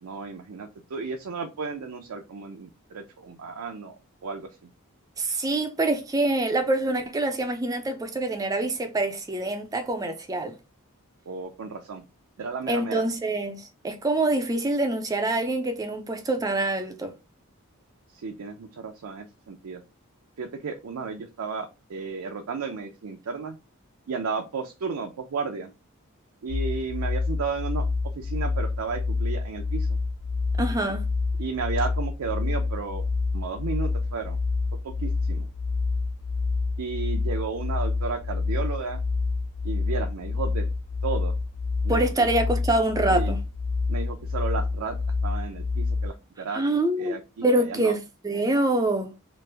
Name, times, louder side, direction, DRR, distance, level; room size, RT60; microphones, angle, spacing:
voice 1, 0.0-4.5 11.3-12.0 12.4-13.0 18.2-19.8 20.4-23.6 24.1-25.7 26.4-27.8 28.1-30.0 31.4-33.0 33.3-34.4 34.8-35.5 36.8-39.0 39.6-40.7 41.0-41.4 41.8-42.3 43.1-43.3 43.9-45.0 45.2-46.6 47.0-47.9, right 5 dB, 85° right, 0.5 m, -33 dB
voice 2, 5.2-10.6 12.7-17.1 30.6-31.0 41.9-43.4 46.5-49.1, right 2 dB, 15° right, 0.3 m, -25 dB
sound 1, 26.5-46.1, left 3 dB, 85° left, 1.4 m, -28 dB
3.1 x 2.5 x 3.3 m
head